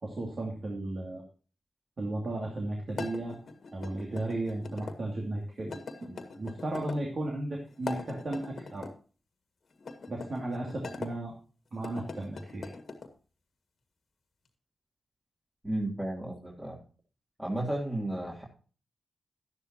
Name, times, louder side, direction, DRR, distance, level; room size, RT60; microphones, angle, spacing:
voice 1, 0.0-1.2 2.0-3.4 3.7-8.9 10.1-11.3 11.7-12.7, right 2 dB, 55° right, 0 dB, 2.5 m, -35 dB
sound 1, 2.9-5.0 5.7-7.0 7.7-8.9 9.8-11.1 11.7-13.1, left 4 dB, 65° left, 1.6 m, -42 dB
voice 2, 15.6-16.8 17.4-18.5, right 1 dB, 20° right, -4 dB, 3.0 m, -33 dB
11.5 x 11.0 x 2.9 m, 0.38 s
supercardioid pair, 40°, 0 cm